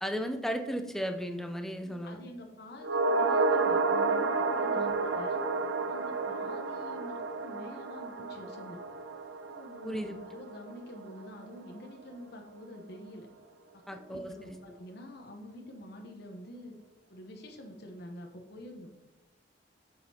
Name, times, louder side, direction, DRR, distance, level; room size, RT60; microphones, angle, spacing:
voice 1, 0.0-2.2 4.7-4.9 9.9-10.2 13.9-14.6, equal, ahead, 6 dB, 0.5 m, -35 dB
voice 2, 1.8-5.4 5.9-8.8 9.5-13.3 13.7-16.7 17.1-18.9, left 1 dB, 60° left, 2 dB, 0.9 m, -47 dB
sound 1, 2.8-11.3 11.6-11.7, right 3 dB, 80° right, 0.6 m, -31 dB
7.4 x 6.5 x 2.8 m, 1.1 s
head